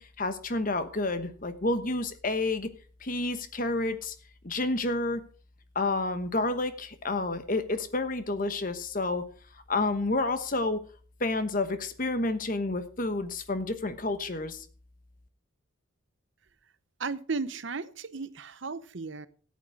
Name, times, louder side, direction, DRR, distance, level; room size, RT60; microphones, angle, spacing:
voice 1, 0.0-2.7 3.0-4.1 4.4-5.2 5.7-9.2 9.7-10.8 11.2-14.6, left 2 dB, 40° left, 10 dB, 1.1 m, -29 dB
voice 2, 17.0-19.3, right 4 dB, 65° right, 15 dB, 0.7 m, -35 dB
13.5 x 8.5 x 4.8 m, 0.39 s
head